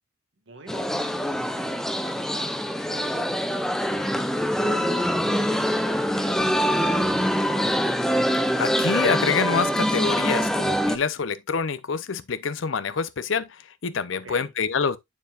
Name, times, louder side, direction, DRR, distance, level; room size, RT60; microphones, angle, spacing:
voice 1, 0.5-2.5 2.9-7.7 14.1-14.5, right 3 dB, 65° right, 1.8 m, -45 dB
sound 1, 0.7-11.0, equal, ahead, 0.5 m, -24 dB
voice 2, 8.6-15.0, left 5 dB, 70° left, 0.6 m, -26 dB
7.3 x 6.9 x 2.4 m
head